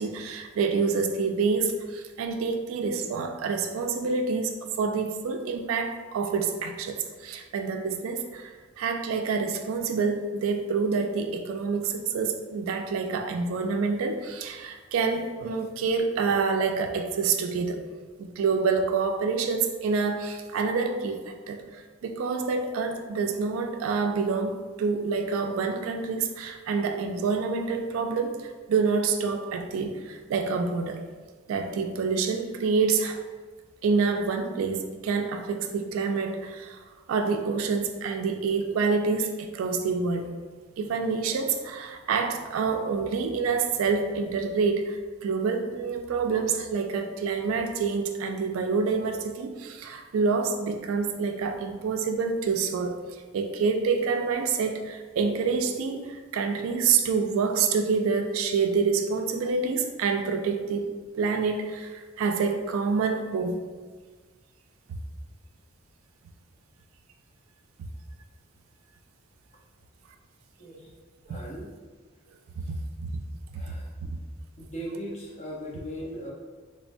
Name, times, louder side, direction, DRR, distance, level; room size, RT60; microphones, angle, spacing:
voice 1, 0.0-8.5 8.8-17.8 18.2-31.0 31.5-33.2 33.8-36.8 37.1-40.3 40.8-53.0 53.3-60.9 61.2-63.6 71.3-71.4 72.6-72.8 73.0-73.1, right 5 dB, 85° right, 5 dB, 0.3 m, -27 dB
voice 2, 71.3-71.7 73.5-74.1 74.6-76.3, equal, 35° left, -6 dB, 0.7 m, -38 dB
3.5 x 2.1 x 2.5 m, 1.4 s
head